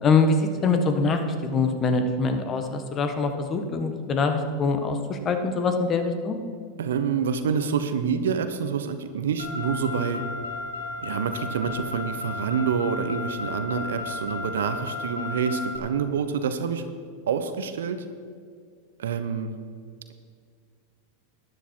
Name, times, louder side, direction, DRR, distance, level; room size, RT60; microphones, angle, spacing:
voice 1, 0.0-6.4, left 4 dB, 30° left, 7 dB, 1.4 m, -24 dB
voice 2, 6.8-10.2 11.0-16.9 17.3-18.0 19.0-19.5, right 6 dB, 75° right, 10 dB, 0.9 m, -27 dB
Car, 9.4-15.8, left 3 dB, 85° left, 1.8 m, -34 dB
12.5 x 9.9 x 4.6 m, 2.1 s
hypercardioid pair, 95°, 0 cm